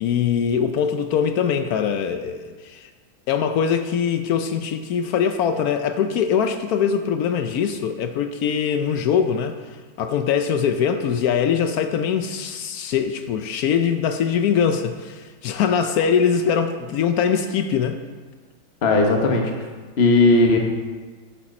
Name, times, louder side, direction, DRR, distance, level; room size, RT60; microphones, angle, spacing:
voice 1, 0.0-2.9 3.3-9.5 10.0-18.0, left 7 dB, 80° left, 7 dB, 0.8 m, -22 dB
voice 2, 18.8-19.5 20.0-20.6, left 2 dB, 35° left, 2 dB, 1.2 m, -16 dB
11.0 x 7.3 x 4.2 m, 1.4 s
omnidirectional pair, 2.2 m